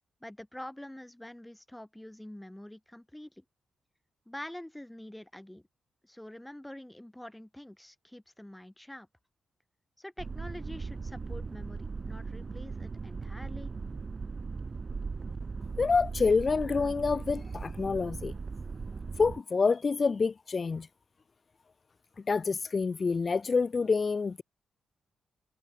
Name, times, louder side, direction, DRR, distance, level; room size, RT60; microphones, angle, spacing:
voice 1, 0.2-3.4 4.3-5.6 6.0-9.1 10.0-13.7, left 1 dB, 5° left, 3.3 m, -46 dB
sound 1, 10.2-19.4, right 4 dB, 30° right, 7.2 m, -38 dB
voice 2, 15.8-18.3 19.2-20.9 22.3-24.4, left 4 dB, 30° left, 1.1 m, -27 dB
wide cardioid pair, 165°, 0 cm